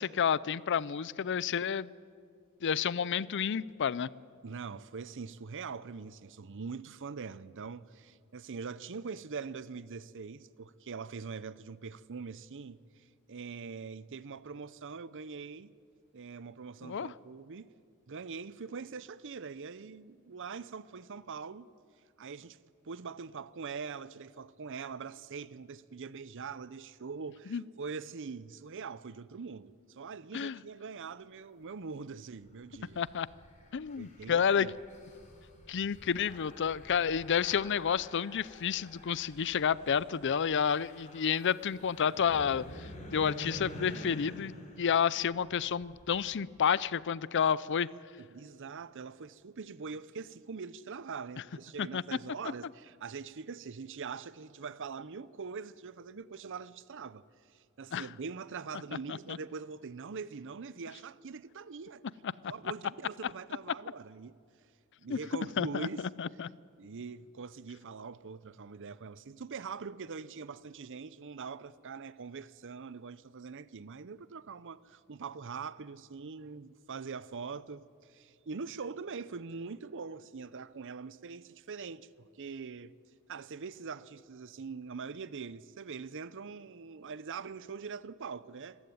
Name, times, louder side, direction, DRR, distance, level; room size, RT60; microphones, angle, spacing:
voice 1, 0.0-1.9 2.6-4.1 16.8-17.1 27.5-27.6 30.3-30.6 33.0-33.3 33.7-34.7 35.7-47.9 51.8-52.0 57.9-58.1 59.1-59.4 62.2-62.3 65.1-65.2 65.6-65.9 66.2-66.5, left 7 dB, 55° left, 0.5 m, -30 dB
voice 2, 4.4-15.7 16.1-17.7 18.1-21.7 22.2-22.6 22.8-33.0 34.0-34.7 47.4-47.5 47.7-57.3 57.5-62.0 62.4-64.4 65.0-66.1 66.8-82.9 83.3-88.8, right 5 dB, 60° right, 0.6 m, -43 dB
sound 1, 32.4-46.3, left 1 dB, 35° left, 4.1 m, -49 dB
25.0 x 14.5 x 9.4 m
head